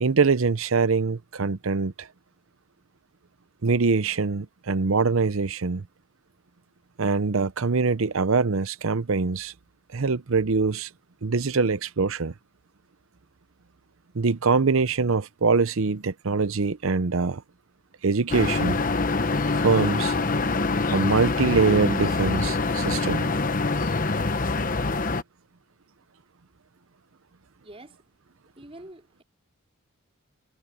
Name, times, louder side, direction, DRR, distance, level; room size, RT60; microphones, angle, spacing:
voice 1, 0.0-2.1 3.6-5.8 7.0-9.5 9.9-10.9 11.2-12.3 14.1-17.4 18.0-18.8 19.6-20.1 20.9-23.3, right 4 dB, 70° right, 0.7 m, -23 dB
sound 1, 18.3-25.2, left 3 dB, 40° left, 1.0 m, -25 dB
voice 2, 27.6-28.0 28.6-29.2, right 1 dB, 25° right, 4.6 m, -45 dB
head